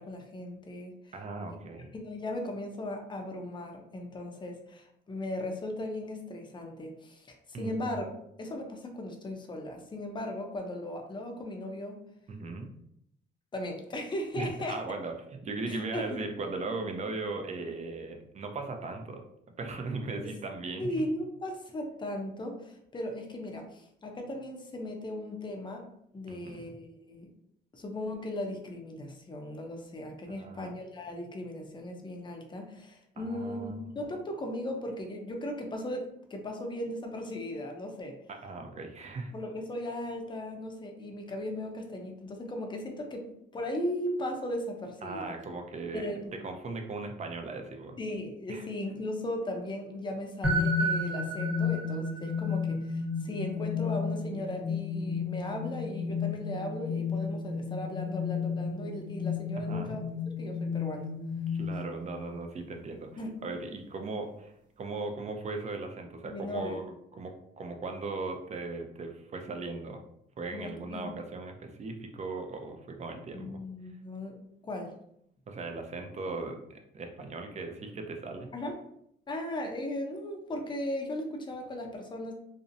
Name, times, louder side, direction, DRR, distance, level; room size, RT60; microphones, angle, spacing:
voice 1, 0.0-1.1 1.9-12.0 13.5-14.8 15.7-16.2 20.2-20.3 20.8-25.9 26.1-27.3 27.7-38.2 39.3-45.3 45.9-46.3 48.0-60.1 60.4-61.1 63.2-63.4 66.2-66.8 70.5-71.1 73.3-74.4 74.6-74.9 78.5-78.8 79.3-82.3, left 1 dB, 25° left, 2 dB, 0.5 m, -37 dB
voice 2, 1.1-1.9 7.5-8.0 12.3-12.7 14.4-15.1 15.4-19.2 19.6-20.9 26.3-26.8 30.3-30.7 33.2-33.8 38.3-39.3 45.0-46.1 46.4-48.0 48.5-48.7 59.7-60.0 61.5-63.1 63.4-70.0 70.4-73.6 75.5-78.5, right 3 dB, 35° right, 4 dB, 0.5 m, -38 dB
sound 1, 50.4-62.2, left 4 dB, 5° right, 0.8 m, -32 dB
2.5 x 2.0 x 2.6 m, 0.74 s
cardioid pair, 90°, 20 cm